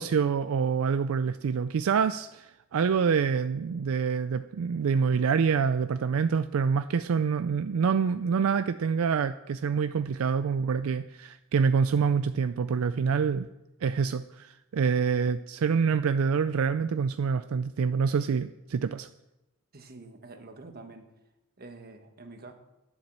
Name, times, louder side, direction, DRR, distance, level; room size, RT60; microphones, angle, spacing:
voice 1, 0.0-13.5 13.8-19.1, right 6 dB, 75° right, 12 dB, 0.4 m, -26 dB
voice 2, 19.7-21.1 21.6-22.5, right 3 dB, 45° right, 6 dB, 1.3 m, -47 dB
11.0 x 7.3 x 7.5 m, 0.95 s
head